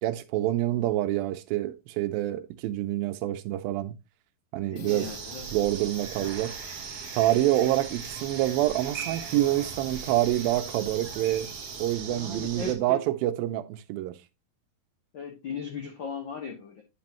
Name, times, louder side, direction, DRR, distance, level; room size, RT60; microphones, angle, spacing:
voice 1, 0.0-4.0 4.5-5.1 5.5-6.5 7.1-11.5 11.8-14.2, right 14 dB, 90° right, 2.5 m, -27 dB
voice 2, 4.7-5.5 12.1-13.0 15.1-16.8, left 5 dB, 85° left, 1.0 m, -37 dB
sound 1, 4.8-11.9, left 5 dB, 60° left, 2.2 m, -49 dB
sound 2, 4.9-12.7, right 6 dB, 60° right, 1.5 m, -39 dB
10.0 x 5.3 x 2.9 m
omnidirectional pair, 4.0 m